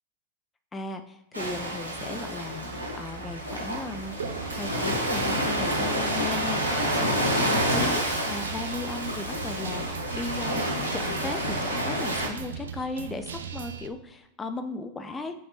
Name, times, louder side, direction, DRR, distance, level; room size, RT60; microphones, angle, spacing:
voice 1, 0.7-2.7 2.9-4.2 4.6-10.6 10.9-15.3, left 3 dB, 15° left, 7 dB, 0.3 m, -36 dB
Ocean, 1.3-12.3, equal, 80° right, 1.0 m, -29 dB
Guitar, 4.2-13.9, right 6 dB, 65° right, 0.4 m, -39 dB
5.8 x 2.6 x 3.3 m, 0.91 s
figure-of-eight pair, 90°, 0 cm